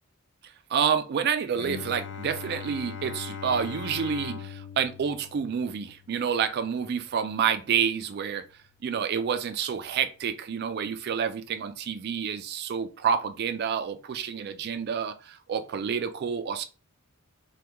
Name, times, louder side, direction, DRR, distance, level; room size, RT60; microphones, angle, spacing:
voice 1, 0.7-8.5 8.8-16.6, right 7 dB, 45° right, 0.3 m, -28 dB
Bowed string instrument, 1.5-7.3, left 6 dB, 55° left, 0.4 m, -40 dB
2.9 x 2.2 x 3.3 m
head